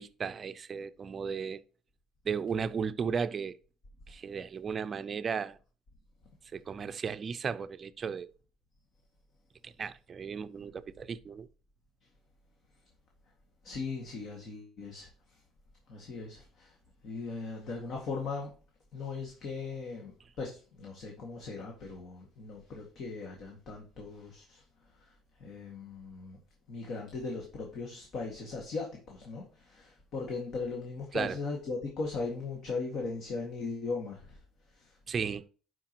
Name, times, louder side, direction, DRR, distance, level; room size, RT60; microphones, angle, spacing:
voice 1, 0.0-1.6 2.2-3.6 4.1-5.6 6.5-8.3 9.6-11.5 31.1-31.4 35.1-35.4, right 6 dB, 35° right, 0.5 m, -35 dB
voice 2, 13.6-15.4 15.9-16.8 17.0-18.5 18.9-24.6 25.0-26.4 26.7-34.4 34.7-35.0, left 4 dB, 55° left, 2.0 m, -39 dB
11.5 x 4.8 x 2.9 m
cardioid pair, 120°, 0 cm